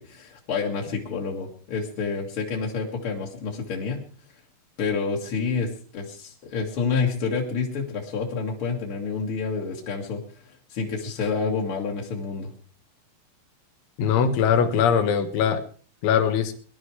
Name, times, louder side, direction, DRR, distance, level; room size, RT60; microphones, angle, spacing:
voice 1, 0.0-4.0 4.8-12.5, left 5 dB, 45° left, -2 dB, 1.8 m, -28 dB
voice 2, 14.0-15.6 16.0-16.5, left 7 dB, 75° left, 8 dB, 3.9 m, -21 dB
21.5 x 11.5 x 4.8 m, 0.42 s
omnidirectional pair, 5.6 m